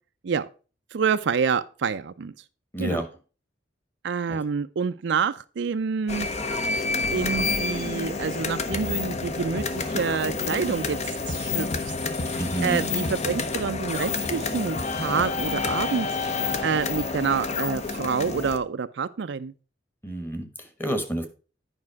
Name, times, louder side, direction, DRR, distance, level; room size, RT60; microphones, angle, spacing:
voice 1, 0.9-2.3 2.8-3.0 4.0-6.3 7.1-11.0 11.3-11.7 12.2-19.5, right 6 dB, 70° right, 0.4 m, -27 dB
voice 2, 2.7-3.1 4.3-4.4 12.4-12.8 20.0-21.3, right 1 dB, 10° left, 1.3 m, -29 dB
sound 1, 6.1-18.6, left 3 dB, 40° left, 0.8 m, -29 dB
9.7 x 5.3 x 4.7 m
head